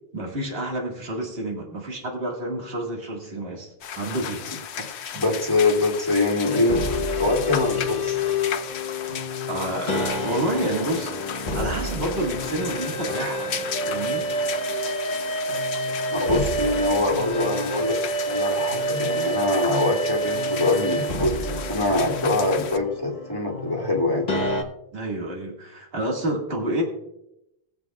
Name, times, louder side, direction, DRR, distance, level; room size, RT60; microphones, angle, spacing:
voice 1, 0.1-4.4 9.5-14.2 24.9-26.8, right 1 dB, 65° right, -1 dB, 2.2 m, -29 dB
sound 1, 3.8-22.8, left 8 dB, 90° left, 0.9 m, -35 dB
voice 2, 5.1-8.2 16.1-18.0 18.3-24.3, left 2 dB, 20° left, -1 dB, 2.2 m, -24 dB
sound 2, 6.5-24.6, equal, 40° left, 1.2 m, -28 dB
20.0 x 7.6 x 2.4 m, 0.84 s
omnidirectional pair, 1.1 m